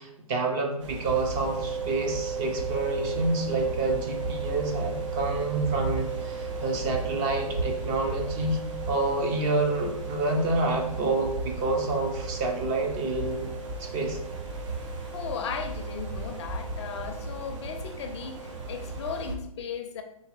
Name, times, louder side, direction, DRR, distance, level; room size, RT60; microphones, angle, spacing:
voice 1, 0.0-8.6 8.9-13.5 13.8-14.2, right 2 dB, 25° right, 2 dB, 0.8 m, -28 dB
sound 1, 0.8-19.4, right 2 dB, 50° right, 0.9 m, -36 dB
sound 2, 1.4-19.2, right 6 dB, 5° left, 0.7 m, -38 dB
voice 2, 15.0-20.0, left 7 dB, 45° left, 6 dB, 0.5 m, -36 dB
4.3 x 3.1 x 3.3 m, 0.81 s
hypercardioid pair, 130°, 20 cm